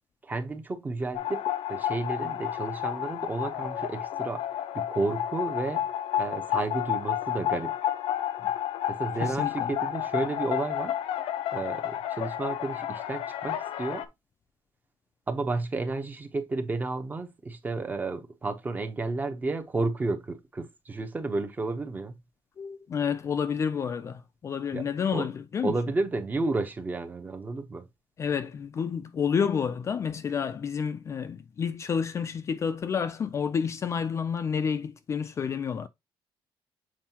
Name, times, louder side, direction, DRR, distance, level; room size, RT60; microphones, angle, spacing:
voice 1, 0.2-1.4 1.7-4.4 4.7-5.9 6.2-7.7 8.9-10.9 11.5-14.1 15.3-22.1 24.7-24.8 25.1-25.3 25.6-27.9, right 3 dB, 20° right, 0.8 m, -32 dB
sound 1, 1.1-14.0, left 11 dB, 80° left, 0.8 m, -31 dB
voice 2, 9.2-9.7 22.6-25.7 28.2-35.9, left 7 dB, 30° left, 0.4 m, -29 dB
7.4 x 4.6 x 2.9 m
cardioid pair, 170°, 9 cm